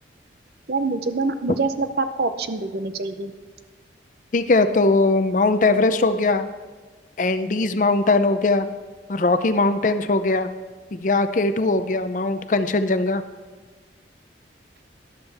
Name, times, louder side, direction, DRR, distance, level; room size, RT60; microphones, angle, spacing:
voice 1, 0.7-3.3, right 3 dB, 60° right, 10 dB, 0.6 m, -25 dB
voice 2, 4.3-6.5 7.2-8.7 9.1-10.5 10.9-13.2, left 3 dB, 45° left, 11 dB, 0.5 m, -20 dB
12.5 x 11.5 x 3.4 m, 1.3 s
head